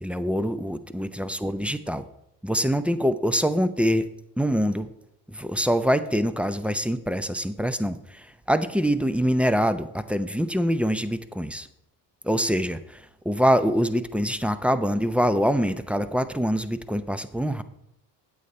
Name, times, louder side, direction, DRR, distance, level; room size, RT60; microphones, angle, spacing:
voice 1, 0.0-2.0 2.4-4.1 4.4-4.9 5.3-11.7 12.2-17.6, equal, 5° right, 12 dB, 0.6 m, -24 dB
8.5 x 8.4 x 4.1 m, 0.80 s
hypercardioid pair, 60°, 49 cm